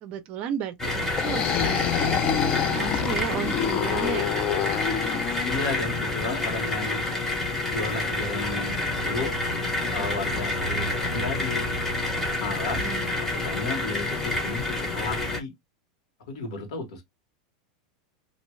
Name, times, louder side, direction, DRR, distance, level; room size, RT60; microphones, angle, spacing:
voice 1, 0.0-0.9 1.2-4.4 10.0-10.1 12.8-13.1, right 9 dB, 35° right, 0.5 m, -34 dB
sound 1, 0.8-15.4, left 2 dB, 10° left, 0.7 m, -28 dB
sound 2, 1.0-5.8, left 9 dB, 30° left, 0.3 m, -27 dB
voice 2, 5.5-7.0 7.7-8.8 9.0-9.4 9.9-11.7 12.4-12.8 13.4-15.5 16.3-17.0, left 3 dB, 75° left, 1.3 m, -33 dB
2.5 x 2.3 x 3.1 m
supercardioid pair, 165°, 3 cm